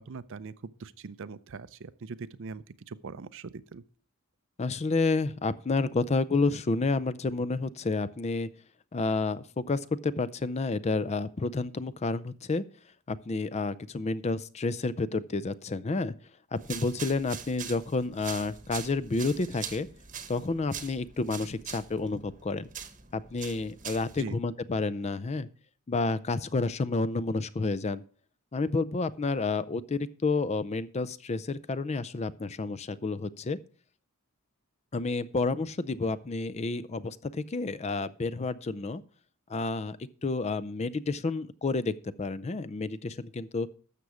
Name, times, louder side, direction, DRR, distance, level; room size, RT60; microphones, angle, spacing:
voice 1, 0.0-3.8 24.2-24.4, right 4 dB, 60° right, 15 dB, 0.5 m, -42 dB
voice 2, 4.6-8.5 8.9-12.6 13.1-16.1 16.5-19.9 20.3-22.7 23.1-25.5 25.9-28.0 28.5-33.6 34.9-39.0 39.5-43.7, left 3 dB, 30° left, 17 dB, 0.4 m, -30 dB
sound 1, 16.5-24.2, right 8 dB, 35° right, 1.0 m, -43 dB
12.5 x 7.0 x 4.9 m, 0.41 s
head